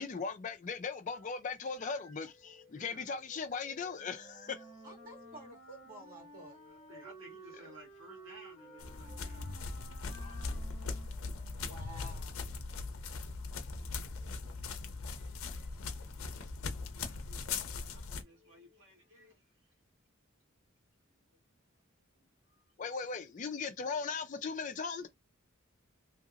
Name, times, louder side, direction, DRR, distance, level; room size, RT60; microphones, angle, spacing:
voice 1, 0.0-4.7 22.8-25.1, left 5 dB, 35° left, 0.4 m, -38 dB
sound 1, 1.1-11.0 11.8-12.0 14.0-14.4 15.2-15.7 16.2-16.5 17.3-17.8 18.3-19.3, left 1 dB, ahead, 0.8 m, -61 dB
voice 2, 2.7-3.1 5.2-5.3 6.6-9.7 10.1-10.7 12.0-12.2 16.7-19.8, right 1 dB, 70° right, 1.3 m, -58 dB
Wind instrument woodwind instrument, 4.0-12.2, right 2 dB, 30° right, 1.1 m, -55 dB
voice 3, 4.8-6.6 11.6-12.6 22.2-22.3, right 1 dB, 45° right, 1.9 m, -52 dB
sound 2, 8.8-18.2, left 4 dB, 90° left, 0.6 m, -40 dB
2.8 x 2.8 x 2.4 m
head